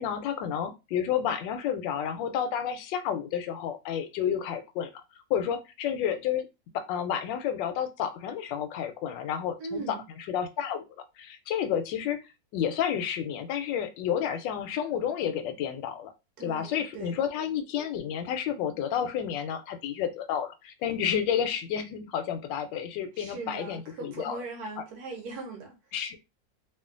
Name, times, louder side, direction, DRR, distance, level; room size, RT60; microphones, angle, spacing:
voice 1, 0.0-4.9 5.3-6.5 6.7-10.8 11.2-12.2 12.5-16.1 16.4-24.4 24.8-24.9 25.9-26.2, left 9 dB, 85° left, 1.2 m, -30 dB
voice 2, 9.6-10.1 16.4-17.2 23.1-25.8, right 4 dB, 65° right, 1.3 m, -39 dB
3.1 x 2.3 x 2.4 m
omnidirectional pair, 1.9 m